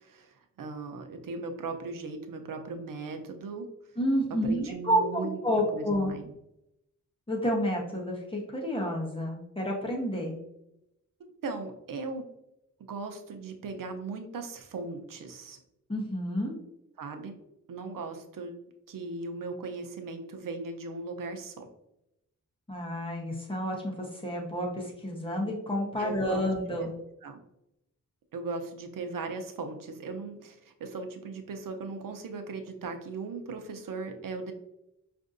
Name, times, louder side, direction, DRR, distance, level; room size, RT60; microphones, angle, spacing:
voice 1, 0.0-3.7 4.4-5.4 5.7-6.3 11.2-12.3 12.8-15.6 17.0-17.4 17.7-18.5 18.9-21.7 26.0-26.4 27.2-27.4 28.3-34.5, right 3 dB, 75° right, 5 dB, 0.6 m, -38 dB
voice 2, 4.0-6.1 7.3-10.4 15.9-16.6 22.7-26.9, equal, 15° left, -2 dB, 0.9 m, -30 dB
5.2 x 2.6 x 2.5 m, 0.84 s
wide cardioid pair, 115°, 33 cm